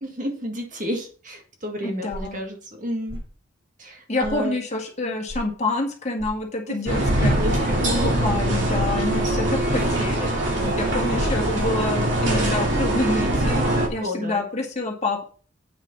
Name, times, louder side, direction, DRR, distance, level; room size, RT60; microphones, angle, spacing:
voice 1, 0.0-3.2 3.8-4.6 6.7-6.8 7.4-8.1 14.0-14.5, equal, 40° right, 3 dB, 1.8 m, -31 dB
voice 2, 1.8-2.4 4.1-7.6 7.9-10.3 10.7-13.6 13.9-15.2, left 2 dB, 35° left, 1 dB, 1.9 m, -27 dB
sound 1, 2.1-2.4 3.1-3.3 4.2-4.4 5.3-5.4 6.2-6.4 7.3-7.5 8.3-8.4 9.1-9.3 9.8-10.0 10.6-10.9 11.5-11.8 12.6-12.7, equal, 75° right, 5.6 m, -35 dB
sound 2, 6.9-13.9, right 1 dB, 60° right, 2.9 m, -22 dB
8.5 x 6.4 x 5.3 m, 0.42 s
head